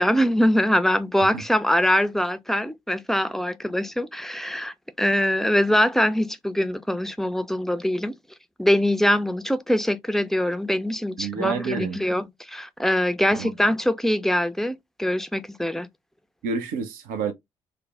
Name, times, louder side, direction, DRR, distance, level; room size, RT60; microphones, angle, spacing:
voice 1, 0.0-8.1 8.6-15.9, left 1 dB, ahead, 0.4 m, -23 dB
voice 2, 11.2-12.0 13.3-13.5 16.4-17.3, right 5 dB, 65° right, 0.6 m, -28 dB
3.2 x 2.0 x 3.3 m
figure-of-eight pair, 40°, 15 cm